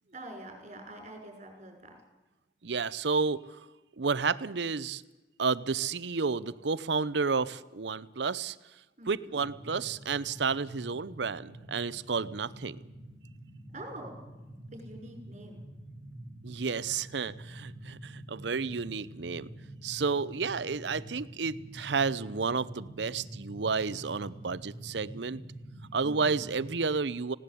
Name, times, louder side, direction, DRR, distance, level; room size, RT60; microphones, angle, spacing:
voice 1, 0.1-2.0 9.0-9.4 13.7-14.2 14.7-15.6 26.0-26.5, right 1 dB, 40° right, 3 dB, 6.0 m, -45 dB
voice 2, 2.6-3.4 4.0-5.0 5.4-8.6 9.1-12.8 16.4-19.5 19.8-25.4 25.9-27.3, right 5 dB, 75° right, 18 dB, 0.7 m, -31 dB
sound 1, 9.4-26.8, right 1 dB, 20° left, 5.1 m, -47 dB
18.5 x 17.0 x 8.5 m, 1.1 s
head